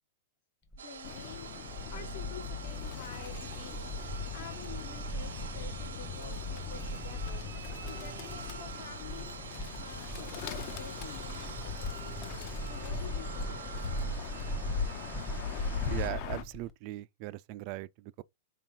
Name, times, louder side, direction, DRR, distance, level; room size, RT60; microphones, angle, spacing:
sound 1, 0.7-16.7, equal, 10° left, 0.8 m, -41 dB
voice 1, 0.8-3.9 4.3-12.2 12.6-13.8, left 8 dB, 60° left, 1.2 m, -49 dB
sound 2, 0.8-16.1, right 7 dB, 85° right, 0.7 m, -46 dB
Bird, 1.0-16.4, left 6 dB, 45° left, 0.6 m, -40 dB
voice 2, 15.9-18.2, right 17 dB, 45° right, 0.3 m, -39 dB
4.2 x 2.8 x 3.6 m
hypercardioid pair, 135°, 0 cm